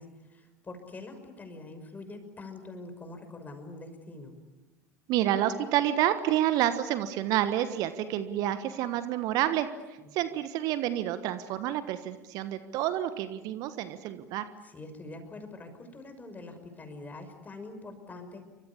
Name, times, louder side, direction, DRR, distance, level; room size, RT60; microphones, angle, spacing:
voice 1, 0.0-4.3 10.0-10.1 14.6-18.4, left 2 dB, 20° left, 7 dB, 5.9 m, -44 dB
voice 2, 5.1-9.7 10.1-14.4, right 12 dB, 50° right, 11 dB, 1.4 m, -29 dB
29.0 x 25.0 x 7.1 m, 1.1 s
figure-of-eight pair, 70°, 8 cm